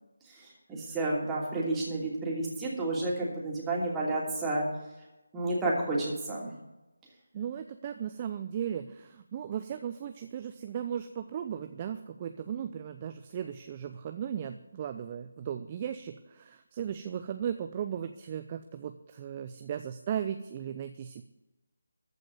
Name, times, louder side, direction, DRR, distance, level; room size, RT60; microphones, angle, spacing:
voice 1, 0.4-4.7 5.3-6.5, right 2 dB, 10° right, -5 dB, 2.9 m, -31 dB
voice 2, 7.3-21.2, right 9 dB, 25° right, 8 dB, 0.6 m, -36 dB
14.0 x 5.3 x 9.3 m, 1.0 s
figure-of-eight pair, 155°, 0 cm